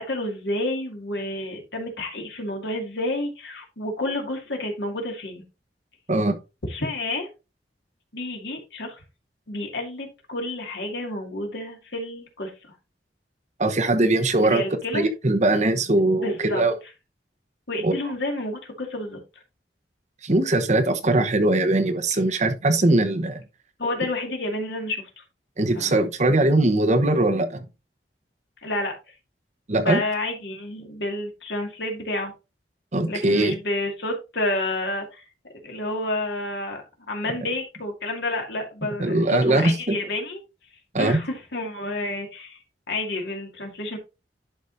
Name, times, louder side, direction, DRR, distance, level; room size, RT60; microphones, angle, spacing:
voice 1, 0.0-5.4 6.7-7.3 8.1-9.0 9.5-12.7 14.4-15.1 16.2-16.6 17.7-19.2 23.8-25.2 25.7-25.9 28.6-28.9 29.8-32.3 33.1-35.2 35.6-36.8 37.1-40.4 41.0-42.6 42.9-44.0, left 1 dB, 75° left, 2.3 m, -30 dB
voice 2, 13.6-14.6 14.9-16.7 17.8-17.9 20.2-23.4 25.6-27.6 29.7-30.0 32.9-33.5 39.0-40.0 40.9-41.2, right 2 dB, 40° right, 1.0 m, -21 dB
11.0 x 5.0 x 2.7 m
head